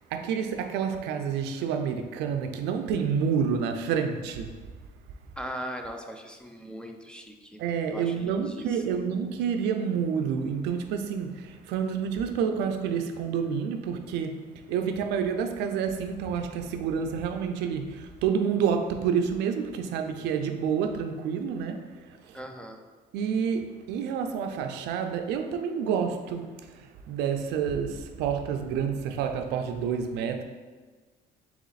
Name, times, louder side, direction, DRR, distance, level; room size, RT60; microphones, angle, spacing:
voice 1, 0.1-4.5 7.6-22.4 23.1-26.5 26.7-30.4, right 7 dB, 85° right, 6 dB, 0.4 m, -29 dB
voice 2, 5.4-7.6 7.9-9.0 22.3-22.8, equal, 5° left, 4 dB, 0.4 m, -39 dB
4.0 x 3.0 x 4.0 m, 1.4 s
cardioid pair, 110°, 17 cm